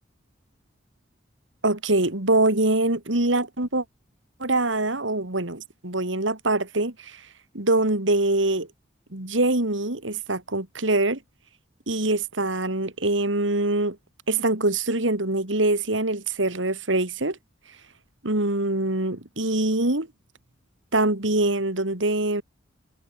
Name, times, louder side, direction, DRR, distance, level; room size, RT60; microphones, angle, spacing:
voice 1, 1.6-3.8 4.4-7.2 7.5-8.7 9.1-11.2 11.9-14.0 14.3-17.4 18.2-20.1 20.9-22.4, right 2 dB, 90° right, 3.4 m, -24 dB
head